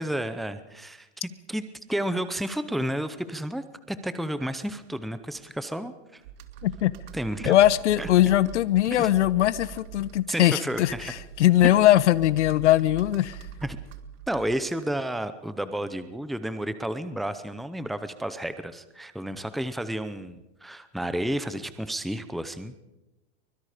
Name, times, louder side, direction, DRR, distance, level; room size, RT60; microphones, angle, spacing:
voice 1, 0.0-1.6 1.9-6.2 7.1-7.5 8.0-8.1 8.9-9.1 10.3-11.1 13.6-13.8 14.3-22.7, right 1 dB, ahead, 11 dB, 0.7 m, -31 dB
Computer keyboard, 6.2-14.8, right 8 dB, 55° right, 2.0 m, -44 dB
voice 2, 6.6-6.9 7.4-13.4, left 13 dB, 85° left, 16 dB, 1.1 m, -21 dB
24.0 x 21.5 x 5.0 m, 0.98 s
supercardioid pair, 150°, 35 cm